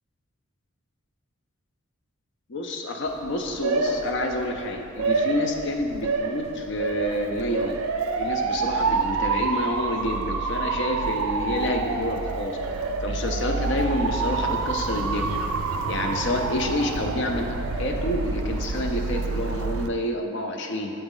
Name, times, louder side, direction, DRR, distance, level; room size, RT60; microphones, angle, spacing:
voice 1, 2.5-7.9 8.2-15.4 15.9-20.9, left 1 dB, 55° left, 3 dB, 0.5 m, -28 dB
Motor vehicle (road) / Siren, 3.1-19.9, right 4 dB, 85° right, 0.4 m, -28 dB
8.0 x 4.0 x 3.8 m, 2.6 s
head